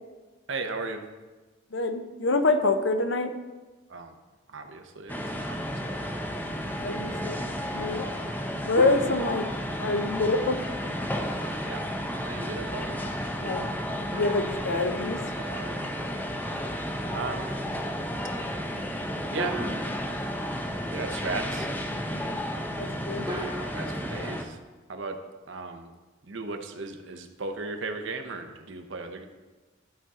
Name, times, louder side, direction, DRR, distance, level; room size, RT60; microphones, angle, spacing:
voice 1, 0.5-1.0 3.9-4.1 4.5-6.2 11.6-11.9 12.2-13.0 15.4-15.8 17.1-17.5 19.3-19.6 20.9-21.7 23.7-24.6 24.9-25.2 25.5-25.9 26.3-29.3, right 3 dB, 75° right, 6 dB, 0.8 m, -36 dB
voice 2, 1.7-3.3 6.8-7.4 7.7-8.1 8.6-9.5 9.8-10.6 13.4-13.7 14.1-15.2 22.8-23.3, left 3 dB, 70° left, 8 dB, 0.6 m, -26 dB
sound 1, 5.1-24.4, equal, 10° left, 0.5 m, -32 dB
sound 2, 8.8-9.8 14.1-15.7 19.4-20.5 23.3-23.7, right 1 dB, 20° right, 1.1 m, -37 dB
12.5 x 4.2 x 3.7 m, 1.2 s
head